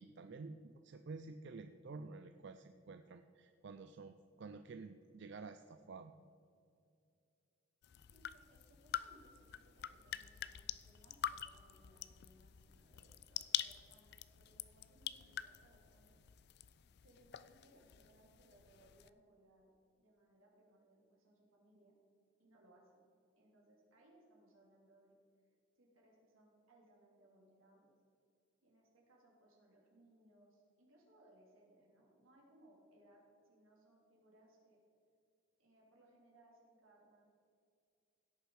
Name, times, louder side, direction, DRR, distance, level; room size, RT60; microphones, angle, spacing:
voice 1, 0.0-6.1, right 4 dB, 55° right, 9 dB, 0.4 m, -51 dB
sound 1, 7.8-19.1, left 11 dB, 50° left, 0.3 m, -46 dB
voice 2, 8.1-16.2 17.0-19.7 20.0-21.9 22.4-23.0 23.4-25.1 25.8-27.9 28.6-34.8 35.6-37.3, right 1 dB, 80° right, -2 dB, 3.2 m, -68 dB
16.5 x 6.7 x 4.8 m, 2.4 s
head